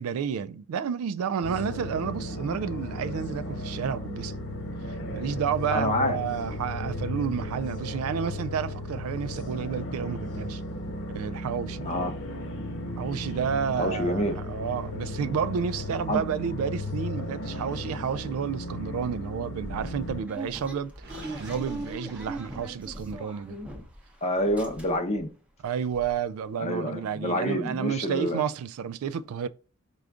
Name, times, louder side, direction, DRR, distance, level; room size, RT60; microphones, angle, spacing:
voice 1, 0.0-4.3 5.1-10.6 11.1-11.9 13.0-20.9 21.4-23.6 25.6-29.5, right 7 dB, 85° right, 0.3 m, -31 dB
sound 1, 1.4-20.2, left 1 dB, 60° left, 1.2 m, -35 dB
voice 2, 5.7-6.2 11.8-12.1 13.8-14.4 16.1-16.2 24.2-25.3 26.6-28.4, equal, 30° left, 0.7 m, -27 dB
sound 2, 19.6-24.1 24.4-25.2 25.6-25.7 25.9-26.1, right 1 dB, 5° right, 0.6 m, -40 dB
Gurgling, 21.0-23.1, right 2 dB, 55° right, 0.8 m, -45 dB
4.9 x 2.3 x 3.6 m
head